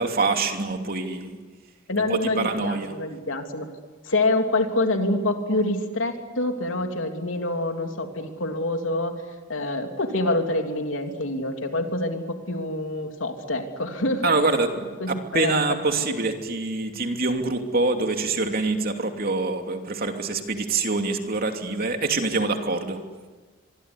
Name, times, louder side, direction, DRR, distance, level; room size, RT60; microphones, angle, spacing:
voice 1, 0.0-1.4 2.1-2.9 14.2-23.0, right 3 dB, 50° right, 4 dB, 2.9 m, -25 dB
voice 2, 1.9-3.7 4.0-9.1 9.5-14.3 15.0-16.1, left 2 dB, 75° left, 5 dB, 3.2 m, -26 dB
24.5 x 24.5 x 9.9 m, 1.3 s
head